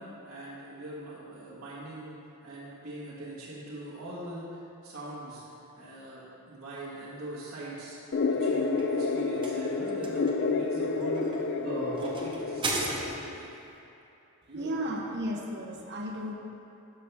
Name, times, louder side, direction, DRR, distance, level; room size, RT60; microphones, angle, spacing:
voice 1, 0.0-2.2 2.4-5.4 5.7-8.0 8.3-13.5 14.5-15.2, right 1 dB, 70° right, -8 dB, 1.6 m, -41 dB
sound 1, 8.1-13.1, left 4 dB, 50° left, 0.4 m, -29 dB
sound 2, 8.4-13.5, right 2 dB, 20° right, 0.8 m, -38 dB
voice 2, 14.5-16.3, equal, 50° right, 0 dB, 0.9 m, -34 dB
12.0 x 5.5 x 3.5 m, 2.9 s
head